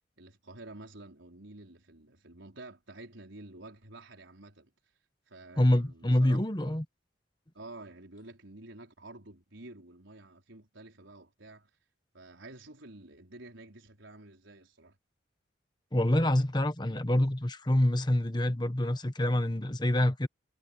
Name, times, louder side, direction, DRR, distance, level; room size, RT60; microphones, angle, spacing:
voice 1, 0.2-4.7 5.3-6.4 6.6-6.8 7.5-11.7 12.1-15.0, right 2 dB, 80° right, 4.5 m, -50 dB
voice 2, 5.6-6.8 15.9-20.3, left 1 dB, 20° left, 1.2 m, -26 dB
head